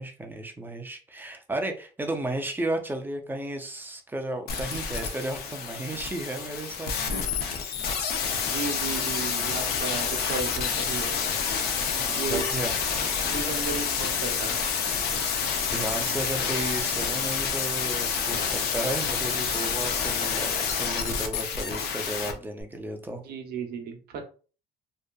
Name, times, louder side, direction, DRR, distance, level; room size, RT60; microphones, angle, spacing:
voice 1, 0.0-7.2 11.9-12.7 15.0-15.5 15.7-23.2, right 2 dB, 10° right, 4 dB, 0.5 m, -34 dB
sound 1, 4.5-22.3 22.6-22.7, left 6 dB, 70° left, 0.6 m, -28 dB
voice 2, 8.4-11.2 12.1-12.4 13.3-14.5 23.2-24.2, right 5 dB, 70° right, 4 dB, 0.7 m, -34 dB
2.7 x 2.3 x 2.2 m, 0.37 s
cardioid pair, 110°, 17 cm